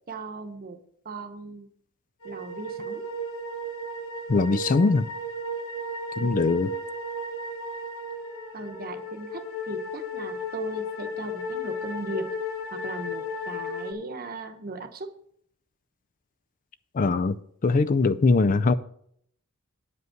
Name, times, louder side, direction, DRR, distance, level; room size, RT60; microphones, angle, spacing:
voice 1, 0.1-0.8 1.0-1.7 2.2-3.1 6.2-6.4 8.5-12.3 12.7-15.1, right 3 dB, 45° right, 1.0 m, -38 dB
sound 1, 2.2-13.9, left 1 dB, 80° left, 1.4 m, -34 dB
voice 2, 4.3-5.1 6.2-6.7 16.9-17.4 17.6-18.7, left 3 dB, 40° left, 0.4 m, -21 dB
9.4 x 5.4 x 7.6 m
head